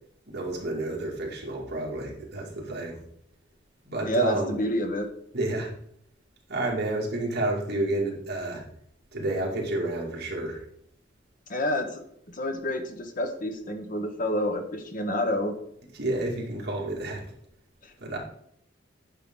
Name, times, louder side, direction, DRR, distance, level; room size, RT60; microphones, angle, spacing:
voice 1, 0.3-3.0 3.8-4.6 5.3-5.7 6.5-8.6 9.1-10.6 15.9-17.3 18.0-18.2, right 2 dB, 55° right, -3 dB, 2.3 m, -30 dB
voice 2, 4.0-5.1 11.5-12.0 12.3-15.6 17.8-17.9, left 1 dB, 45° left, 6 dB, 1.1 m, -28 dB
9.8 x 5.7 x 3.8 m, 0.69 s
head